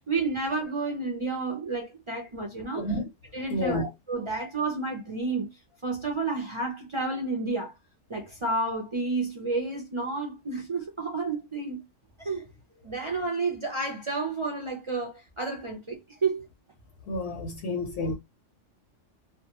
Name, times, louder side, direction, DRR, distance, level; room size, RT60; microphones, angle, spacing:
voice 1, 0.0-2.9 3.3-5.5 5.8-7.7 8.1-11.8 12.2-12.4 12.8-16.5, right 3 dB, 50° right, 0.3 m, -31 dB
voice 2, 2.7-3.1 3.5-3.9 17.1-18.1, left 2 dB, 65° left, 0.8 m, -30 dB
2.2 x 2.2 x 2.8 m
omnidirectional pair, 1.3 m